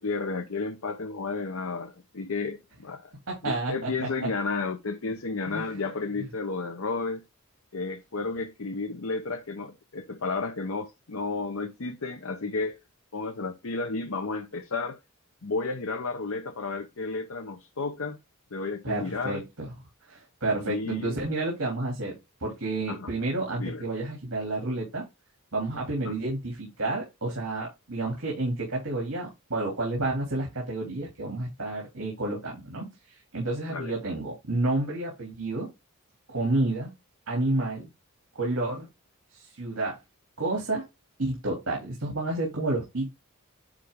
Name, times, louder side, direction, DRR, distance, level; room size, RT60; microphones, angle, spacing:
voice 1, 0.0-3.1 3.4-7.2 7.7-12.8 13.1-15.0 15.4-18.2 18.5-19.4 20.6-21.2 22.9-23.1 23.6-23.8 26.0-26.2 33.7-33.9, left 3 dB, 70° left, 0.8 m, -32 dB
voice 2, 3.3-4.1 5.5-5.8 6.2-6.3 18.8-19.7 20.1-25.0 25.5-35.7 36.3-36.9 37.3-37.9 38.3-38.9 39.3-40.0 40.4-40.8 41.2-43.2, right 2 dB, 65° right, 3.0 m, -30 dB
9.7 x 3.2 x 3.6 m
head